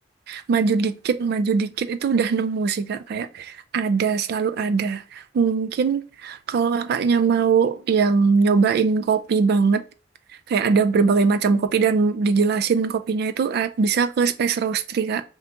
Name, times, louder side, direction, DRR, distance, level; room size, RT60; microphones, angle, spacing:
voice 1, 0.3-9.8 10.5-15.2, right 5 dB, 60° right, 0.3 m, -21 dB
2.8 x 2.5 x 3.4 m
head